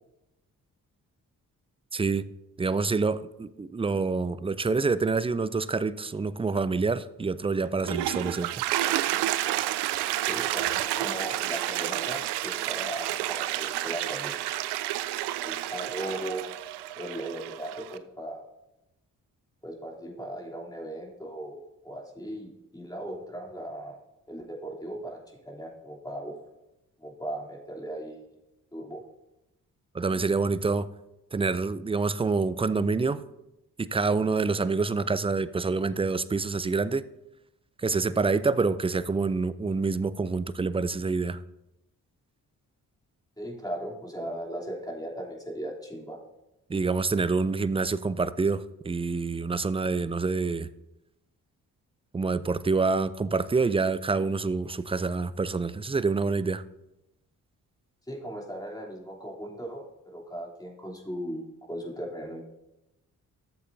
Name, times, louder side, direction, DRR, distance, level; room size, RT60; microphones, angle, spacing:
voice 1, 1.9-2.3 2.6-8.5 29.9-30.9 31.3-33.2 33.8-37.0 37.8-41.4 46.7-50.7 52.1-56.6, right 4 dB, 15° right, 0.4 m, -27 dB
Toilet flush, 7.6-18.0, right 14 dB, 80° right, 0.5 m, -30 dB
voice 2, 10.2-14.3 15.4-16.5 16.9-18.5 19.6-21.6 21.8-24.0 24.3-25.2 25.4-26.3 27.0-28.2 28.7-29.0 43.4-46.2 58.1-61.4 61.7-62.4, right 1 dB, 10° left, 3.0 m, -37 dB
13.0 x 7.5 x 2.7 m
supercardioid pair, 45°, 39 cm